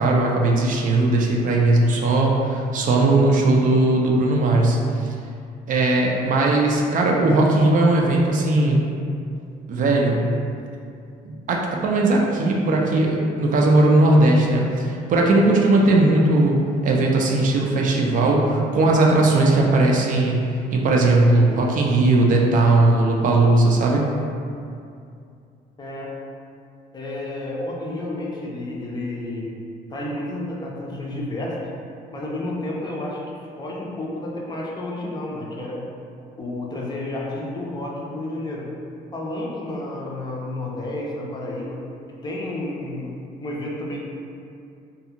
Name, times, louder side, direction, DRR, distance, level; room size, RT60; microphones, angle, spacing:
voice 1, 0.0-4.8 5.7-8.8 9.7-10.2 11.2-16.6 16.8-20.4 20.7-24.1, right 2 dB, 50° right, -1 dB, 0.4 m, -18 dB
voice 2, 25.8-26.1 26.9-29.5 29.9-31.7 32.1-35.8 36.4-38.7 39.1-41.8 42.2-44.0, left 1 dB, 25° left, -4 dB, 0.4 m, -31 dB
2.5 x 2.3 x 2.8 m, 2.5 s
cardioid pair, 110°, 17 cm